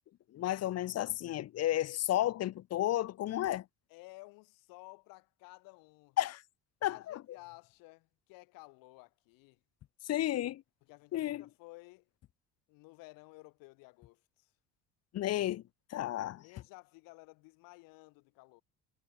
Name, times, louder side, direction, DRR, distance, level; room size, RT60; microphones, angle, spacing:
voice 1, 0.3-3.7 6.2-6.4 6.8-7.2 10.0-10.6 11.1-11.4 15.1-15.6 15.9-16.4, left 13 dB, 50° left, 1.0 m, -32 dB
voice 2, 3.9-6.2 6.9-9.6 10.9-12.1 12.7-14.5 16.4-18.6, left 25 dB, 90° left, 3.6 m, -55 dB
cardioid pair, 125°, 33 cm